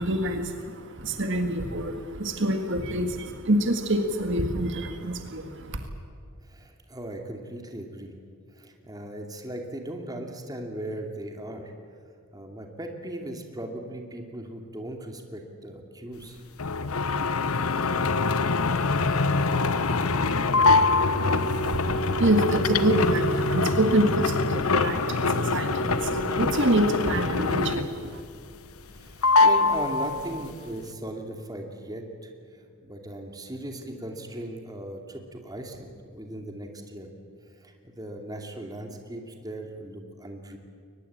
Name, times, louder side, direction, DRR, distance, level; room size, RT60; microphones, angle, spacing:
voice 1, 0.0-5.9 21.4-28.2, right 1 dB, 60° right, 6 dB, 1.8 m, -26 dB
voice 2, 6.4-8.2 8.5-11.7 12.3-16.4 28.9-37.1 37.6-40.6, right 1 dB, 20° right, 3 dB, 2.6 m, -38 dB
sound 1, 16.6-28.1 28.4-29.0 29.2-30.5, left 3 dB, 85° left, 1.1 m, -24 dB
23.0 x 20.0 x 8.8 m, 2.4 s
head